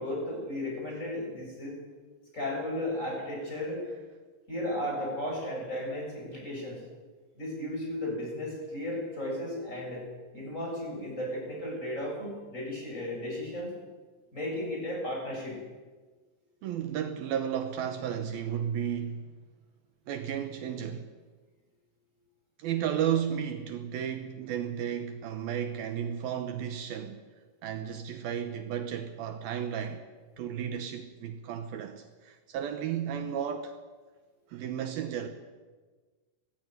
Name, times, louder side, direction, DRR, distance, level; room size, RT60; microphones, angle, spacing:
voice 1, 0.0-1.8 2.3-3.8 4.5-6.8 7.3-10.1 10.3-13.7 14.3-15.6, left 1 dB, 15° left, -2 dB, 7.5 m, -34 dB
voice 2, 16.6-19.3 20.1-21.1 22.6-27.2 27.6-30.0 30.4-33.8 34.5-35.3, right 9 dB, 70° right, 8 dB, 2.5 m, -33 dB
19.0 x 15.0 x 9.6 m, 1.4 s
omnidirectional pair, 5.2 m